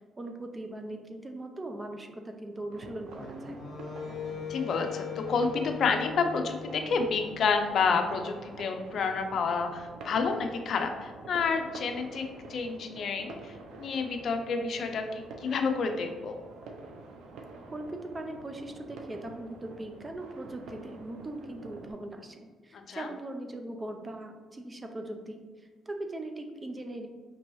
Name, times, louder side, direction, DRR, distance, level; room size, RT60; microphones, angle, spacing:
voice 1, 0.2-3.6 17.7-25.4 25.9-27.1, right 1 dB, 25° right, 5 dB, 0.5 m, -40 dB
sound 1, 2.7-21.9, right 3 dB, 85° right, 0.5 m, -47 dB
Wind instrument woodwind instrument, 3.2-7.4, left 6 dB, 45° left, 0.9 m, -40 dB
voice 2, 4.1-16.4 22.7-23.1, left 5 dB, 60° left, 5 dB, 0.5 m, -30 dB
5.3 x 2.9 x 3.0 m, 1.5 s
cardioid pair, 90°, 0 cm